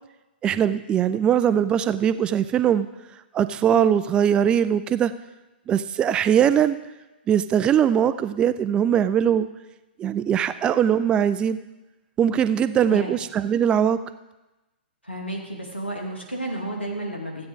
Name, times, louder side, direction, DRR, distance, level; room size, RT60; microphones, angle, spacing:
voice 1, 0.4-2.9 3.3-5.1 5.7-6.8 7.3-9.5 10.0-11.6 12.2-14.0, right 9 dB, 15° right, 13 dB, 0.3 m, -21 dB
voice 2, 12.9-13.2 15.0-17.5, right 1 dB, 85° left, -1 dB, 2.6 m, -32 dB
15.0 x 8.6 x 3.6 m, 1.1 s
figure-of-eight pair, 115°, 6 cm